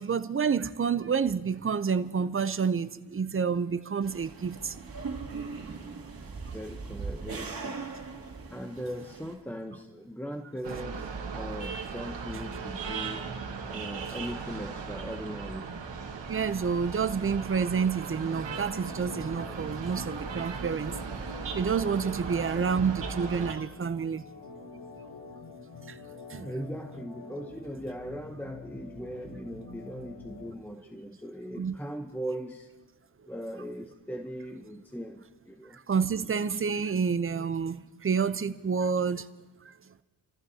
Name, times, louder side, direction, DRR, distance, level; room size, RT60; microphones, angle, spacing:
voice 1, 0.0-4.8 16.3-21.0 21.5-24.2 25.9-26.0 26.3-26.4 31.6-31.7 35.7-39.3 39.6-39.7, right 6 dB, 30° right, 0.6 m, -29 dB
sound 1, 4.0-9.3, right 4 dB, 50° right, 2.6 m, -39 dB
voice 2, 6.5-7.8 8.5-13.3 13.7-15.7 22.2-22.6 26.4-32.7 33.3-35.8, equal, 5° left, 0.9 m, -39 dB
sound 2, 10.6-23.5, right 5 dB, 70° right, 1.8 m, -37 dB
Organ, 18.4-30.6, left 3 dB, 70° left, 5.2 m, -47 dB
29.5 x 14.0 x 2.8 m
cardioid pair, 75°, 45 cm